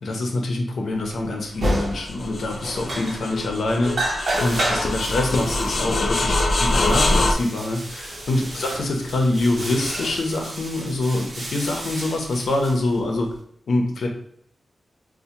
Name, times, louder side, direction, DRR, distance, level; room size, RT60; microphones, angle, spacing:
voice 1, 0.0-4.0 4.4-13.3 13.7-14.1, left 2 dB, 85° left, 2 dB, 0.6 m, -25 dB
sound 1, 1.6-2.3 2.6-3.5 3.8-13.3, right 1 dB, 55° right, 0.8 m, -31 dB
sound 2, 1.7-7.3, left 2 dB, 45° left, 0.3 m, -24 dB
4.4 x 2.1 x 2.7 m, 0.63 s
wide cardioid pair, 170°, 0 cm